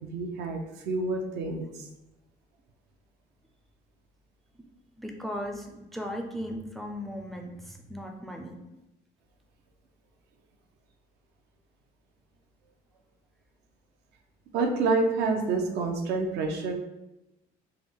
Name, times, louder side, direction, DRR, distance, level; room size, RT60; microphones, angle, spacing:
voice 1, 0.1-1.6 14.5-16.7, right 3 dB, 80° right, 3 dB, 0.5 m, -28 dB
voice 2, 5.0-8.6, equal, ahead, 2 dB, 0.4 m, -37 dB
3.4 x 2.1 x 3.5 m, 0.94 s
cardioid pair, 110°, 17 cm